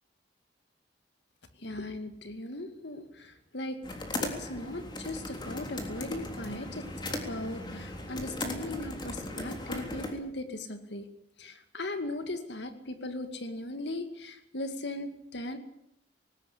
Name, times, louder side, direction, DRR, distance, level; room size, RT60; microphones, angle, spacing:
voice 1, 1.6-3.8 4.2-11.1 11.4-15.6, left 1 dB, 75° left, 8 dB, 2.3 m, -38 dB
sound 1, 3.8-10.1, left 1 dB, 25° left, 3.4 m, -37 dB
20.0 x 18.0 x 8.6 m, 0.76 s
head